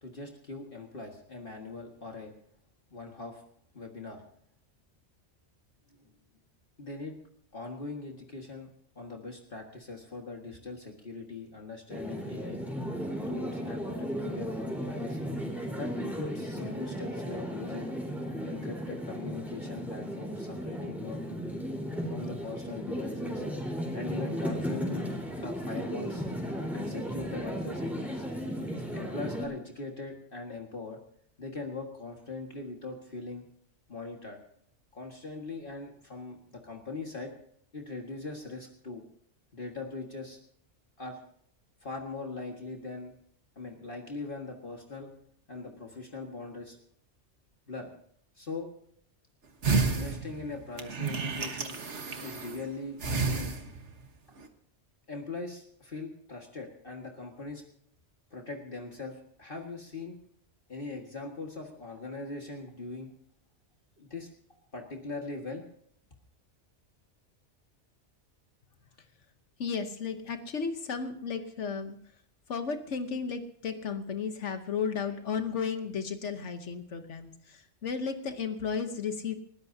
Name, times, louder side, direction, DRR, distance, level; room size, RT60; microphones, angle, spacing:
voice 1, 0.0-2.3 2.9-3.4 3.7-4.2 5.9-6.1 6.8-7.2 7.5-12.6 13.3-15.3 15.8-17.9 18.5-21.2 22.0-23.5 23.9-25.1 25.4-26.3 26.7-28.3 28.7-31.0 31.4-33.4 33.9-34.4 34.9-37.3 37.7-39.0 39.5-40.4 41.0-41.2 41.8-43.1 43.6-45.1 45.5-46.8 47.7-47.9 48.4-48.7 49.8-51.8 52.2-53.5 55.1-57.6 58.3-60.2 60.7-63.1 64.0-64.3 64.7-65.6, left 3 dB, 50° left, 1 dB, 2.0 m, -41 dB
sound 1, 11.9-29.4, equal, ahead, 4.2 m, -35 dB
sound 2, 49.6-52.6 53.0-54.0 54.4-54.5, right 4 dB, 75° right, 1.7 m, -31 dB
voice 2, 69.6-72.0 72.5-79.3, left 6 dB, 80° left, 7 dB, 1.4 m, -34 dB
29.0 x 13.5 x 2.8 m, 0.66 s
omnidirectional pair, 1.2 m